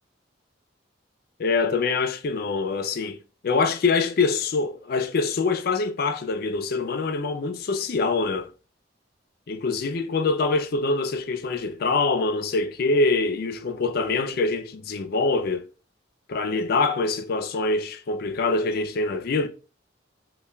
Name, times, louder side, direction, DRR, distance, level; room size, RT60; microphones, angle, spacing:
voice 1, 1.4-8.5 9.5-15.6 16.3-19.5, left 3 dB, 55° left, 0.4 m, -24 dB
5.4 x 2.2 x 2.2 m
head